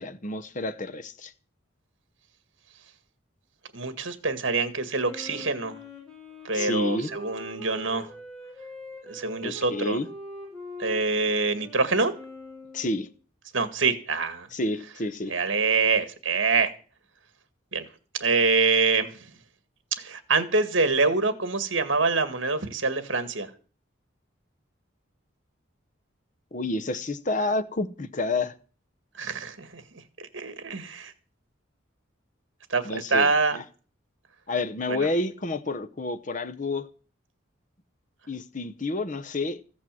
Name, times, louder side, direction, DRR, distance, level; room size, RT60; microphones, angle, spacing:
voice 1, 0.0-1.3 6.5-7.1 9.4-10.1 12.7-13.1 14.5-15.3 26.5-28.5 32.8-33.6 34.5-36.9 38.3-39.6, left 2 dB, 40° left, 0.9 m, -29 dB
voice 2, 3.7-5.8 6.4-8.1 9.1-10.0 10.8-12.1 13.5-14.5 15.3-16.7 17.7-17.8 18.2-19.3 20.0-23.5 29.2-29.8 30.2-31.1 32.7-33.6 35.0-35.1, right 4 dB, 65° right, 2.0 m, -25 dB
Wind instrument woodwind instrument, 5.0-13.1, left 2 dB, 5° left, 7.8 m, -42 dB
15.0 x 8.5 x 7.7 m
head